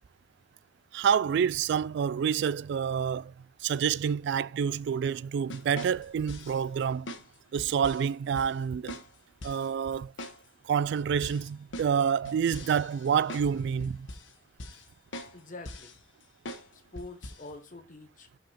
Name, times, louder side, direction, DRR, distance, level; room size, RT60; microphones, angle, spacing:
voice 1, 0.9-3.3 3.6-7.1 7.5-9.0 9.4-10.1 10.6-14.1, right 7 dB, 65° right, 0.3 m, -28 dB
sound 1, 5.5-6.6 7.1-7.3 7.6-8.1 8.4-8.5 8.9-9.1 9.4-9.7 10.2-10.4 10.7-10.8 11.2-13.5 13.8-14.3 14.6-14.9 15.1-15.4 15.7-16.0 16.5-16.7 17.0-17.5, left 1 dB, 80° left, 1.2 m, -42 dB
voice 2, 15.3-16.0 16.7-18.3, left 2 dB, 45° left, 1.2 m, -46 dB
5.8 x 4.7 x 5.6 m
head